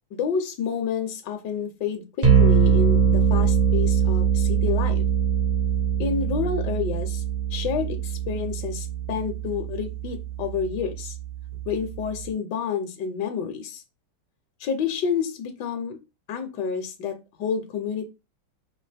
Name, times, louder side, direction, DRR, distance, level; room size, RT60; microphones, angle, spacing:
voice 1, 0.1-5.0 6.0-7.2 7.5-11.2 11.7-13.8 14.6-16.0 16.3-18.1, left 6 dB, 70° left, 5 dB, 1.2 m, -29 dB
sound 1, 2.2-12.3, right 7 dB, 75° right, 0.3 m, -23 dB
4.6 x 2.5 x 3.3 m, 0.26 s
omnidirectional pair, 2.1 m